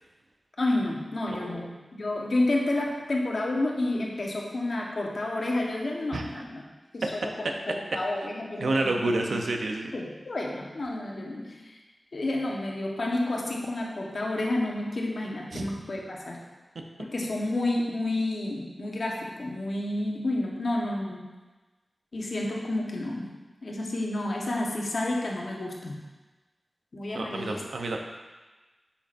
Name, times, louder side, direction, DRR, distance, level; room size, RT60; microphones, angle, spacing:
voice 1, 0.6-6.6 6.9-9.4 9.9-11.8 12.1-16.4 17.0-21.3 22.1-23.3 23.6-26.0 26.9-27.6, left 2 dB, 70° left, -1 dB, 1.1 m, -30 dB
voice 2, 1.3-1.6 6.1-6.2 8.6-9.9 15.5-15.7 27.1-28.0, right 2 dB, 90° right, 2 dB, 0.7 m, -29 dB
8.4 x 5.8 x 2.6 m, 1.2 s
wide cardioid pair, 70°, 0 cm